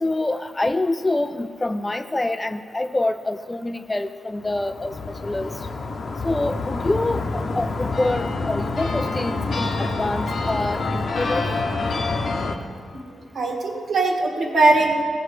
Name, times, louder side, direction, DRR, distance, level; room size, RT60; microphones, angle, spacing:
voice 1, 0.0-4.9 5.2-5.5 6.2-11.5, left 2 dB, 20° left, 10 dB, 0.4 m, -26 dB
sound 1, 4.4-12.6, left 3 dB, 55° left, 0.9 m, -27 dB
voice 2, 12.9-15.0, right 3 dB, 60° right, 1 dB, 1.7 m, -21 dB
16.0 x 6.8 x 4.9 m, 2.1 s
cardioid pair, 100°, 0 cm